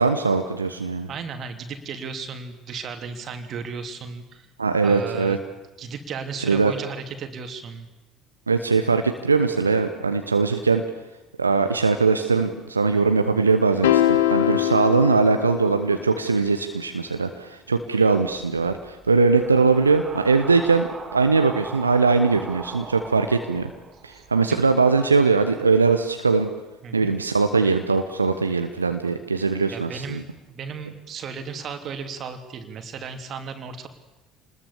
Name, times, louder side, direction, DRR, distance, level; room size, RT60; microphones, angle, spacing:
voice 1, 0.0-1.1 4.6-5.4 6.4-6.7 8.5-10.8 11.4-23.7 24.0-26.5 26.9-30.2, right 4 dB, 85° right, 7 dB, 1.0 m, -21 dB
voice 2, 1.1-4.5 4.8-5.4 5.8-7.9 24.1-24.6 26.8-27.1 29.7-33.9, right 5 dB, 45° right, 7 dB, 2.9 m, -35 dB
sound 1, 13.8-16.3, left 13 dB, 70° left, 1.3 m, -22 dB
sound 2, 18.3-24.4, right 4 dB, 25° right, 4.0 m, -39 dB
27.5 x 20.5 x 7.2 m, 1.0 s
figure-of-eight pair, 60°, 0 cm